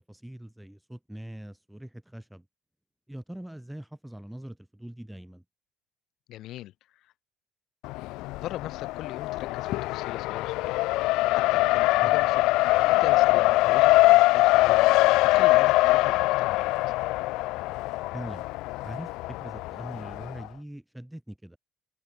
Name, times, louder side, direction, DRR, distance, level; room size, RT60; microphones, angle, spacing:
voice 1, 0.1-2.4 3.1-5.4 12.0-12.1 18.1-18.4 18.8-21.6, right 1 dB, 5° right, 4.6 m, -42 dB
voice 2, 6.3-7.1 8.4-12.4 12.9-14.9 15.2-16.8, left 14 dB, 60° left, 2.5 m, -39 dB
Race car auto racing, 7.8-20.5, left 20 dB, 80° left, 0.3 m, -23 dB
open air
cardioid pair, 150°, 0 cm